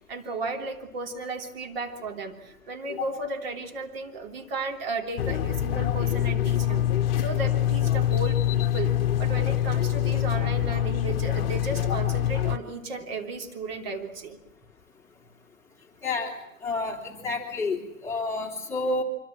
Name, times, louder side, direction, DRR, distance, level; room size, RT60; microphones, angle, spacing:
voice 1, 0.0-6.9 7.2-14.4, right 3 dB, 45° right, 3 dB, 3.3 m, -34 dB
sound 1, 5.2-12.6, left 11 dB, 45° left, 1.1 m, -25 dB
voice 2, 16.6-19.0, left 3 dB, 5° left, -2 dB, 2.8 m, -29 dB
25.5 x 25.0 x 7.5 m, 0.76 s
figure-of-eight pair, 125°, 42 cm